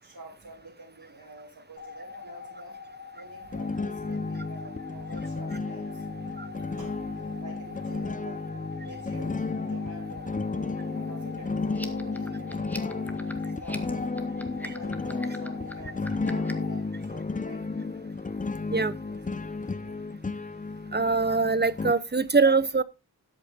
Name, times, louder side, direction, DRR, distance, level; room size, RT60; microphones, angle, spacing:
voice 1, 0.0-2.8 3.1-6.0 6.8-7.0 7.4-8.4 8.8-10.3 10.9-13.1 13.4-17.7 19.1-20.1, right 1 dB, 80° right, 5.8 m, -48 dB
sound 1, 1.8-16.8, left 4 dB, 50° left, 2.9 m, -44 dB
sound 2, 3.5-21.9, left 3 dB, 20° left, 0.5 m, -33 dB
sound 3, 11.7-16.7, equal, 5° left, 1.4 m, -42 dB
voice 2, 20.9-22.8, right 4 dB, 30° right, 0.7 m, -23 dB
13.0 x 8.2 x 3.5 m
wide cardioid pair, 70°, 36 cm